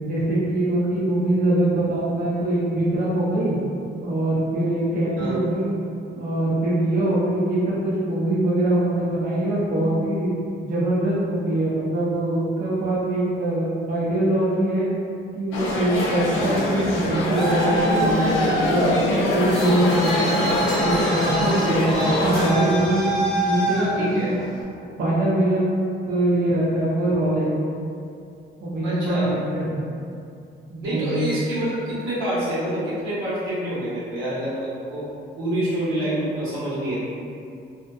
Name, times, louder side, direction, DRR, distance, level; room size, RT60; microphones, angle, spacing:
voice 1, 0.0-3.6 4.0-5.8 6.2-10.3 10.6-14.9 15.4-20.4 20.8-24.1 25.0-25.8 26.1-27.5 28.6-29.8 30.7-31.3, right 1 dB, 45° right, -8 dB, 0.6 m, -23 dB
sound 1, 15.5-22.5, left 2 dB, 80° left, 0.4 m, -24 dB
voice 2, 16.5-16.9 24.0-24.3 28.8-29.3 30.8-35.0 35.4-36.9, right 1 dB, 85° right, -10 dB, 1.1 m, -27 dB
Traffic noise roadway noise, 17.0-24.6, right 1 dB, ahead, 0.5 m, -27 dB
2.5 x 2.3 x 2.3 m, 2.4 s
cardioid pair, 90°, 20 cm